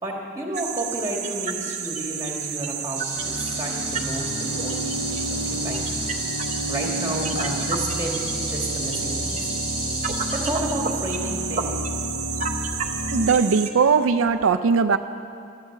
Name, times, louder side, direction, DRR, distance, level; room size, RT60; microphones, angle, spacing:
voice 1, 0.0-6.0 6.7-9.5 10.4-11.7, right 1 dB, 15° right, -1 dB, 2.2 m, -31 dB
sound 1, 0.5-13.7, right 7 dB, 35° right, 0.8 m, -31 dB
sound 2, 3.0-10.5, left 1 dB, 20° left, 3.2 m, -33 dB
sound 3, 3.1-13.3, equal, 80° left, 3.0 m, -32 dB
voice 2, 13.1-15.0, right 5 dB, 90° right, 10 dB, 0.5 m, -19 dB
13.5 x 12.0 x 7.4 m, 2.5 s
head